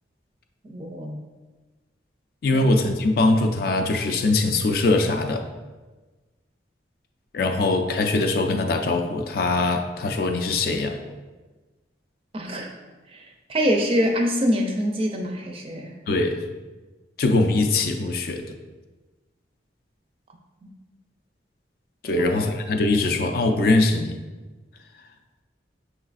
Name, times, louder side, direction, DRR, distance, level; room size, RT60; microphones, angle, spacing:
voice 1, 0.6-1.2 2.5-2.6 12.3-12.7 13.1-13.2 13.5-16.0 20.6-20.7 22.1-22.2, equal, 30° right, 2 dB, 0.4 m, -25 dB
voice 2, 2.4-5.5 7.3-11.0 16.1-16.4 17.2-18.5 22.0-24.2, left 2 dB, 50° left, 6 dB, 0.3 m, -22 dB
5.4 x 3.1 x 2.4 m, 1.2 s
head